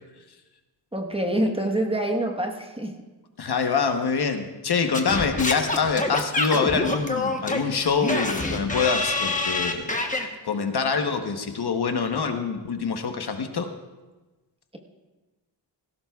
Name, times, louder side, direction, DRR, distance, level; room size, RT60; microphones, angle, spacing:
voice 1, 0.9-3.0, right 1 dB, 15° right, 2 dB, 1.2 m, -26 dB
voice 2, 3.4-9.9 10.4-13.7, left 5 dB, 60° left, 6 dB, 1.0 m, -25 dB
Singing / Scratching (performance technique), 4.9-10.3, left 2 dB, 20° left, 1.1 m, -26 dB
18.5 x 16.0 x 2.3 m, 1.2 s
wide cardioid pair, 130°, 43 cm